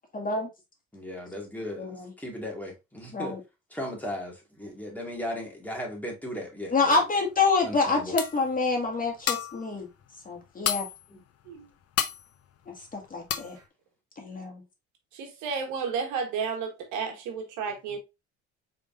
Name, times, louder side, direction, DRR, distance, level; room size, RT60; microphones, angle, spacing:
voice 1, 0.1-0.5 1.7-2.1 3.1-3.4 6.7-9.9 10.3-10.9 12.7-13.6 14.2-14.6, left 3 dB, 30° left, 1.8 m, -27 dB
voice 2, 0.9-1.9 2.2-3.3 3.7-7.0 7.6-8.1, left 1 dB, 5° left, 2.0 m, -36 dB
sound 1, 7.4-7.5 7.9-8.0 8.2-8.6 9.0-9.7 10.0-10.1 10.4-11.0 11.5-11.6 12.0-12.3 12.7-12.9 13.3-13.6, left 10 dB, 55° left, 0.7 m, -30 dB
voice 3, 15.1-18.0, right 5 dB, 80° right, 1.3 m, -32 dB
4.7 x 3.7 x 2.5 m
supercardioid pair, 80°, 30 cm